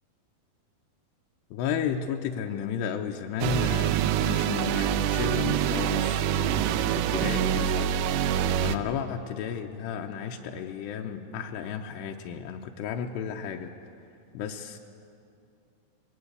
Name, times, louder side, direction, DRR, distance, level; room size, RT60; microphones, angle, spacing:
voice 1, 1.5-7.9 8.6-13.7 14.3-14.8, left 7 dB, 85° left, 3 dB, 2.9 m, -33 dB
sound 1, 3.4-8.8, right 10 dB, 80° right, 2.4 m, -25 dB
21.5 x 17.0 x 8.2 m, 2.6 s
omnidirectional pair, 4.8 m